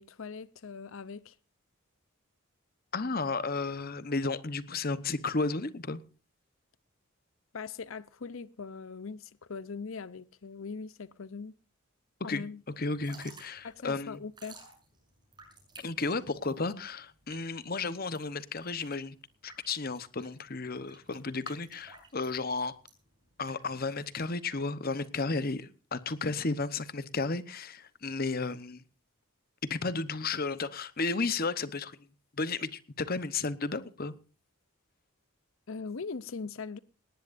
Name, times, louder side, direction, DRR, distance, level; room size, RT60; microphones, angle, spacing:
voice 1, 0.0-1.4 7.5-11.5 12.2-12.6 13.6-14.6 35.7-36.8, left 5 dB, 65° left, 0.6 m, -41 dB
voice 2, 2.9-6.0 12.3-12.4 12.8-14.2 15.8-19.1 19.4-22.8 23.4-28.8 29.7-32.0 32.4-34.1, left 3 dB, 40° left, 1.0 m, -33 dB
Drip / Trickle dribble, 12.9-24.5, right 3 dB, 20° right, 6.7 m, -55 dB
19.0 x 18.5 x 2.6 m
head